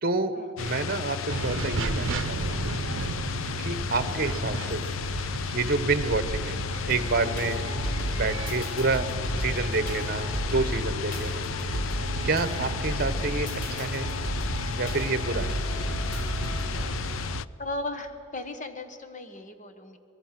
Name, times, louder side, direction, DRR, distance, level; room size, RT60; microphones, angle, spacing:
voice 1, 0.0-2.7 3.6-4.8 5.5-6.6 6.9-7.6 8.1-9.1 9.4-11.5 12.2-14.1 14.8-15.6, right 3 dB, 50° right, 11 dB, 1.1 m, -28 dB
sound 1, 0.6-17.5, left 7 dB, 85° left, 0.4 m, -34 dB
sound 2, 1.3-17.4, right 3 dB, 75° right, 0.7 m, -34 dB
sound 3, 6.9-16.8, equal, 70° left, 3.9 m, -34 dB
voice 2, 17.6-20.0, left 2 dB, 40° left, 8 dB, 1.4 m, -36 dB
23.5 x 21.5 x 6.0 m, 2.8 s
head